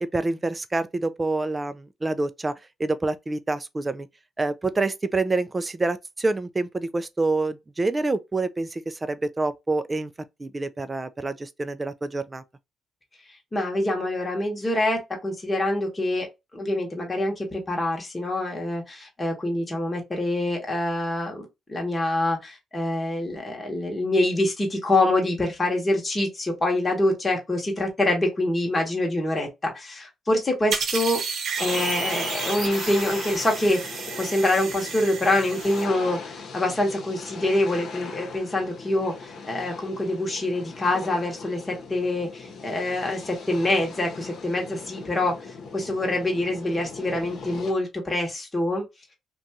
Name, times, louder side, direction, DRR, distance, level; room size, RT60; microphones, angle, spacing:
voice 1, 0.0-4.1 4.4-10.1 10.4-12.4, right 2 dB, 20° right, 0.3 m, -27 dB
voice 2, 13.5-16.3 16.5-31.2 31.6-48.8, left 1 dB, 20° left, 1.0 m, -25 dB
sound 1, 30.7-35.8, right 5 dB, 65° right, 0.7 m, -32 dB
sound 2, 31.6-47.7, left 4 dB, 60° left, 0.9 m, -39 dB
2.6 x 2.3 x 2.7 m
cardioid pair, 90°, 0 cm